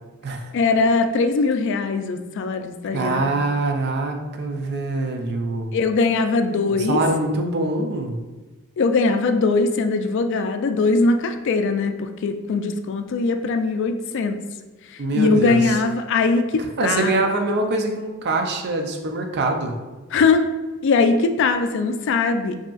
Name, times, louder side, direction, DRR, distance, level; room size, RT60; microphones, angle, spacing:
voice 1, 0.5-3.3 5.7-7.0 8.8-14.4 14.9-17.1 20.1-20.5 20.8-22.6, left 3 dB, 60° left, 8 dB, 0.3 m, -21 dB
voice 2, 2.9-5.7 6.7-8.2 15.0-15.8 16.8-19.7, right 2 dB, 55° right, 4 dB, 0.5 m, -24 dB
4.9 x 2.8 x 2.4 m, 1.2 s
head